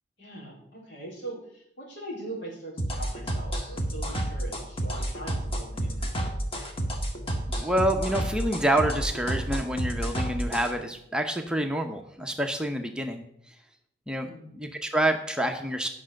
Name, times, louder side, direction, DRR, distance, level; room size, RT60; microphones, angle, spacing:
voice 1, 0.2-6.3 14.2-14.5, right 1 dB, 70° left, -4 dB, 4.2 m, -41 dB
sound 1, 2.8-10.7, right 1 dB, 30° left, 1.6 m, -30 dB
voice 2, 7.6-13.5 14.1-14.3 14.5-15.9, right 1 dB, 5° right, 4 dB, 0.7 m, -27 dB
9.9 x 6.0 x 6.4 m, 0.74 s
head